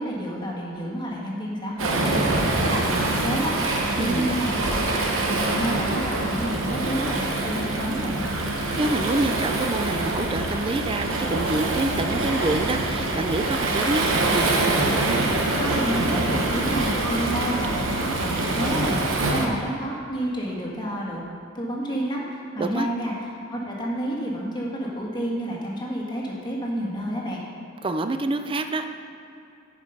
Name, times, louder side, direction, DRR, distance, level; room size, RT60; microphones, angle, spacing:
voice 1, 0.0-3.6 4.0-4.7 5.1-8.3 15.6-21.2 21.5-27.4, equal, 25° left, -3 dB, 1.6 m, -30 dB
Waves surf, 1.8-19.5, right 2 dB, 75° right, 1.0 m, -25 dB
voice 2, 4.0-4.3 8.7-14.5 22.6-22.9 27.8-28.9, right 2 dB, 25° right, 8 dB, 0.4 m, -27 dB
10.0 x 5.1 x 5.4 m, 2.8 s
head